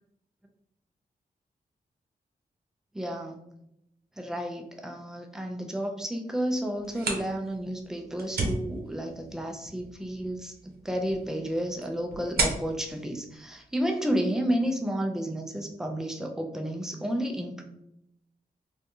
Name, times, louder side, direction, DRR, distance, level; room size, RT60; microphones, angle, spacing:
voice 1, 2.9-3.5 4.2-17.6, equal, 5° right, 3 dB, 0.4 m, -31 dB
sound 1, 6.7-14.3, right 3 dB, 75° right, 0.8 m, -36 dB
3.4 x 2.6 x 2.7 m, 0.79 s
wide cardioid pair, 160°, 16 cm